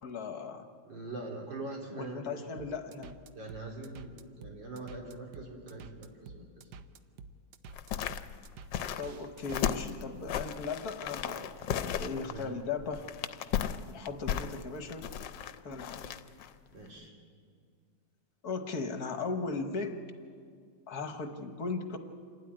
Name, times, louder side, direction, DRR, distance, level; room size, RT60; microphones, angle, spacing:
voice 1, 0.0-0.7 1.9-3.2 9.0-13.1 13.9-15.1 15.6-16.0 18.4-20.0 20.9-22.0, left 4 dB, 60° left, 7 dB, 1.6 m, -37 dB
voice 2, 0.8-2.2 3.3-4.1 4.4-6.5 12.1-12.5 16.7-17.1, right 2 dB, 85° right, -1 dB, 4.1 m, -42 dB
sound 1, 2.6-9.8, right 4 dB, 70° right, 1.4 m, -50 dB
sound 2, 7.7-16.5 16.9-17.0, left 9 dB, 75° left, 1.4 m, -35 dB
27.5 x 12.5 x 9.8 m, 2.1 s
omnidirectional pair, 2.0 m